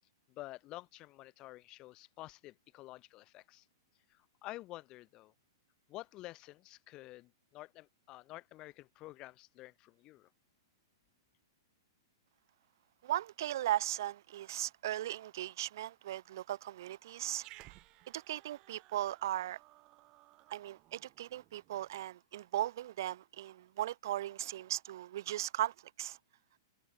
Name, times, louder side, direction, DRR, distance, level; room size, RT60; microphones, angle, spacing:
voice 1, 0.3-3.7 4.1-5.3 5.9-10.3, left 18 dB, 35° left, 2.1 m, -50 dB
voice 2, 13.0-17.7 18.1-19.6 20.5-26.2, right 13 dB, 60° right, 0.6 m, -37 dB
Growling, 17.3-22.0, right 20 dB, 35° right, 4.8 m, -59 dB
hypercardioid pair, 110°, 2 cm